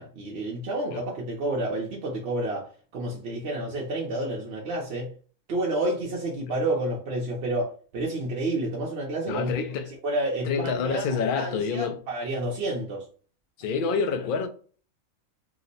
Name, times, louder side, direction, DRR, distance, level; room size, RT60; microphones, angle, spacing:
voice 1, 0.0-5.1 5.5-9.5 10.0-11.1 11.3-13.1, right 1 dB, 60° right, 0.8 m, -30 dB
voice 2, 9.3-9.9 10.5-12.0 13.6-14.5, left 5 dB, 65° left, 0.5 m, -27 dB
2.9 x 2.0 x 3.9 m
omnidirectional pair, 1.4 m